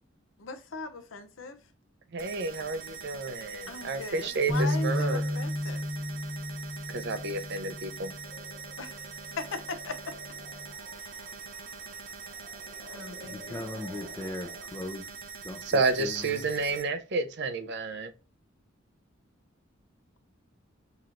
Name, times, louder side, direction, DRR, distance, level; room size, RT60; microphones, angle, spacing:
voice 1, 0.4-1.6 3.7-5.9 8.8-10.1 11.0-11.3 12.8-14.1, left 3 dB, 75° left, 0.7 m, -40 dB
voice 2, 2.1-5.4 6.9-8.1 15.7-18.1, right 3 dB, 60° right, 0.6 m, -30 dB
sound 1, 2.2-16.8, right 5 dB, 90° right, 0.7 m, -43 dB
sound 2, 4.5-8.7 9.2-9.5 10.3-10.7, left 1 dB, 5° right, 0.9 m, -33 dB
sound 3, 8.2-14.6, equal, 40° right, 1.1 m, -51 dB
voice 3, 13.2-15.1 15.4-16.4, left 1 dB, 15° left, 0.6 m, -39 dB
5.8 x 2.9 x 2.5 m
head